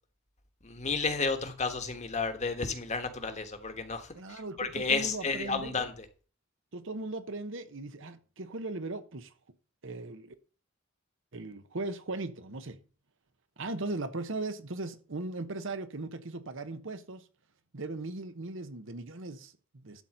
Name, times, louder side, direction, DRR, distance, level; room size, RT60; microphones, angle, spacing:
voice 1, 0.6-6.0, left 4 dB, 35° left, 1.4 m, -32 dB
voice 2, 4.2-5.8 6.7-9.3 9.8-10.3 11.3-12.8 13.6-17.3 17.7-20.0, right 2 dB, 65° right, 1.0 m, -38 dB
12.0 x 4.3 x 7.8 m
head